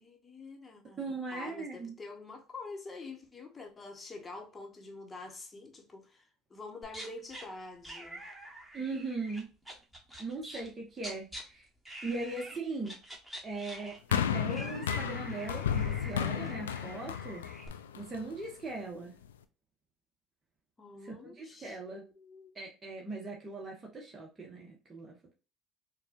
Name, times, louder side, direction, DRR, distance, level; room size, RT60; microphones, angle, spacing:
voice 1, 0.0-8.2 20.8-22.6, left 3 dB, 25° left, 1.2 m, -47 dB
voice 2, 1.0-1.9 8.7-9.5 10.2-11.7 12.0-12.9 13.4-17.4 17.9-19.1 21.0-22.0 22.5-25.3, right 3 dB, 25° right, 1.4 m, -39 dB
sound 1, 6.8-7.5 7.8-10.7 11.0-11.4 11.9-12.6 12.8-17.7, right 1 dB, 5° right, 1.6 m, -46 dB
sound 2, 14.1-18.5 19.2-19.3, left 8 dB, 90° left, 0.3 m, -33 dB
4.6 x 2.5 x 2.6 m
hypercardioid pair, 70°, 0 cm